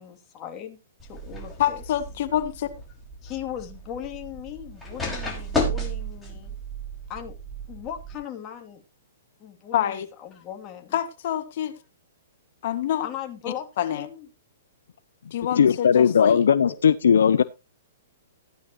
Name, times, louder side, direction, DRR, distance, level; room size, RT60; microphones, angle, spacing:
voice 1, 0.0-1.8 3.2-6.5 7.1-7.3 7.7-8.8 9.4-11.0 13.0-14.3, left 10 dB, 30° left, 2.8 m, -38 dB
sound 1, 1.0-8.2, equal, 5° left, 5.5 m, -33 dB
voice 2, 1.6-2.7 9.7-10.1 10.9-11.8 12.6-13.1 13.8-14.1 15.3-16.7, left 11 dB, 60° left, 2.0 m, -27 dB
voice 3, 15.6-17.4, left 7 dB, 80° left, 0.6 m, -18 dB
15.5 x 10.0 x 3.1 m
hypercardioid pair, 125°, 0 cm